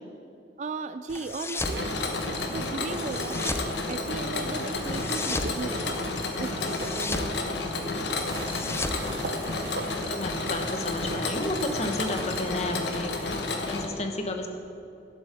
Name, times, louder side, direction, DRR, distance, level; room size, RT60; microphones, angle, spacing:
voice 1, 0.6-1.9 2.5-3.5 3.9-7.6, right 4 dB, 40° right, 10 dB, 0.3 m, -36 dB
sound 1, 1.1-1.8 3.0-3.7 4.8-5.6 6.6-7.3 8.3-9.8, left 2 dB, 15° left, 0.5 m, -34 dB
Mechanisms, 1.6-13.8, left 2 dB, 80° left, 1.2 m, -31 dB
sound 2, 1.6-12.7, right 2 dB, 90° right, 1.1 m, -41 dB
voice 2, 9.9-14.5, left 1 dB, 35° left, 5 dB, 1.0 m, -32 dB
11.0 x 8.6 x 6.9 m, 2.7 s
head